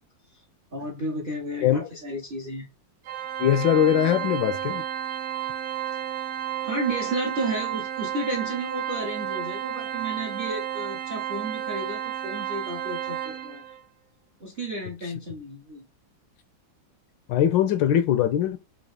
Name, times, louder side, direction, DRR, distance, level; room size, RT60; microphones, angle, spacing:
voice 1, 0.7-2.7 6.6-13.7 14.4-15.8, right 1 dB, 60° right, 0.5 m, -32 dB
Organ, 3.0-13.8, right 10 dB, 80° right, 1.4 m, -32 dB
voice 2, 3.4-4.8 17.3-18.6, left 10 dB, 75° left, 1.2 m, -21 dB
4.1 x 2.6 x 4.7 m
omnidirectional pair, 2.3 m